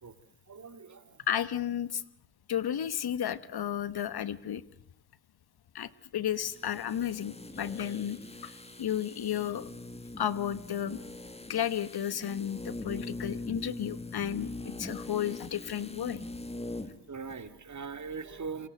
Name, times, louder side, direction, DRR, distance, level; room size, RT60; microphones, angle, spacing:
voice 1, 0.5-1.2 17.1-18.7, right 5 dB, 40° right, 10 dB, 2.5 m, -41 dB
voice 2, 1.3-2.0 2.5-4.6 5.7-8.2 8.4-9.7 10.2-11.0 11.5-16.2, left 10 dB, 60° left, 16 dB, 1.3 m, -33 dB
sound 1, 6.3-17.0 17.3-17.4, left 2 dB, 15° left, 2.0 m, -42 dB
27.0 x 22.5 x 7.7 m, 0.69 s
cardioid pair, 75°, 43 cm